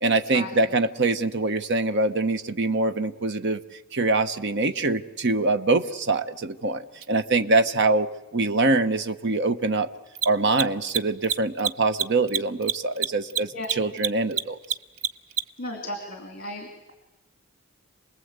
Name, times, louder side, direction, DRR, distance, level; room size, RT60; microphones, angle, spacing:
voice 1, 0.0-3.6 3.9-8.1 8.3-9.9 10.2-14.6, right 3 dB, 55° right, 10 dB, 1.0 m, -24 dB
Mechanisms, 7.0-7.1 10.1-15.7, right 9 dB, 75° right, 0.7 m, -27 dB
voice 2, 15.6-16.9, left 1 dB, 45° left, 5 dB, 2.6 m, -35 dB
27.5 x 20.0 x 8.1 m, 1.1 s
head